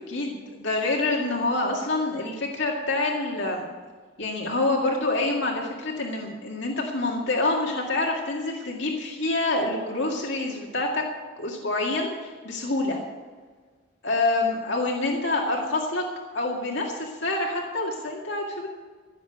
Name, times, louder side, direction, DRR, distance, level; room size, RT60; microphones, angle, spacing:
voice 1, 0.1-3.7 4.2-11.0 11.4-13.0 14.0-16.0 16.3-18.7, left 2 dB, 60° left, -1 dB, 2.0 m, -27 dB
15.0 x 7.3 x 8.1 m, 1.5 s
head